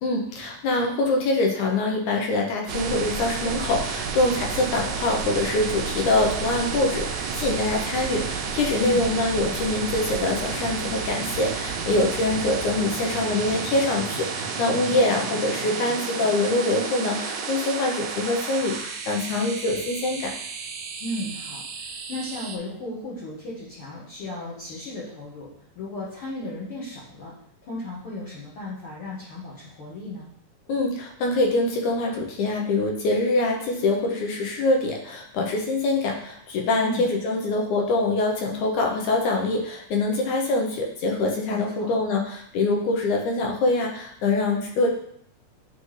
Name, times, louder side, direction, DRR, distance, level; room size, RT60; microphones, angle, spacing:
voice 1, 0.0-20.3 30.7-44.9, left 2 dB, 75° left, 1 dB, 2.1 m, -24 dB
sound 1, 2.7-22.6, right 5 dB, 85° right, 1.5 m, -31 dB
voice 2, 8.8-9.3 14.7-14.9 15.2-15.3 21.0-25.5 25.7-27.3 27.6-30.3 36.8-37.1 41.5-41.9, left 1 dB, 55° left, -6 dB, 1.6 m, -35 dB
9.8 x 3.4 x 3.2 m, 0.68 s
omnidirectional pair, 3.9 m